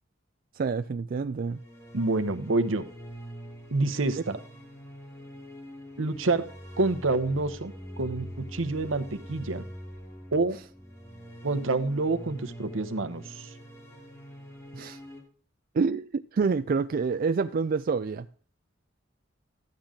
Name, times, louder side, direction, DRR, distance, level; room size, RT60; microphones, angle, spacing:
voice 1, 0.6-1.6 14.7-15.0 15.7-18.3, right 5 dB, 45° right, 0.4 m, -27 dB
sound 1, 1.4-15.2, equal, 15° left, 3.1 m, -44 dB
voice 2, 1.9-2.9 3.7-4.4 6.0-6.4 6.8-9.7 10.3-10.6 11.4-13.5, right 3 dB, 85° right, 1.0 m, -27 dB
13.0 x 8.8 x 3.7 m
head